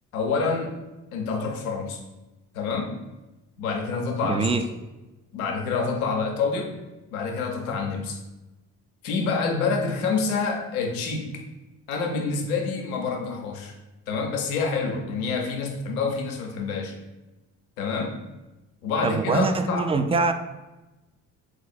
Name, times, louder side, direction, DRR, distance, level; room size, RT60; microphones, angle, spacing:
voice 1, 0.1-0.7 1.1-2.0 2.5-3.0 3.6-4.5 5.3-6.7 7.1-8.2 9.0-11.3 11.9-13.7 14.1-17.0 17.8-18.2 18.8-19.8, left 4 dB, 90° left, 2 dB, 0.6 m, -27 dB
voice 2, 4.2-4.6 19.0-20.3, right 4 dB, 15° right, 8 dB, 0.3 m, -23 dB
3.9 x 3.0 x 4.2 m, 1.1 s
hypercardioid pair, 45°, 41 cm